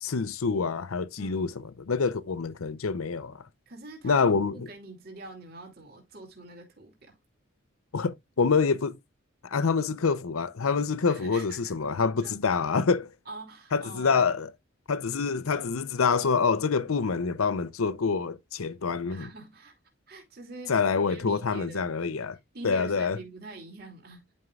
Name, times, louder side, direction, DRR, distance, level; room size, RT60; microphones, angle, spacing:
voice 1, 0.0-3.4 4.0-4.6 7.9-9.0 9.4-13.1 13.7-14.5 14.9-19.3 20.7-22.4 22.6-23.2, left 5 dB, 85° left, 0.6 m, -26 dB
voice 2, 1.2-1.6 3.7-7.2 11.1-11.7 12.2-12.4 13.3-14.3 19.1-19.7 20.1-21.9 22.5-24.2, right 2 dB, 45° right, 2.5 m, -45 dB
11.0 x 5.4 x 2.4 m
head